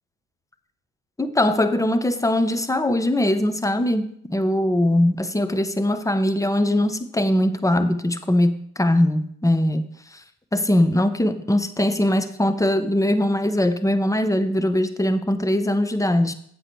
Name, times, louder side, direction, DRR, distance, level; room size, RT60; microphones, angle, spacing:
voice 1, 1.2-9.9 10.5-16.3, left 1 dB, 10° left, 11 dB, 0.9 m, -21 dB
7.8 x 6.8 x 4.7 m, 0.64 s
hypercardioid pair, 55°, 42 cm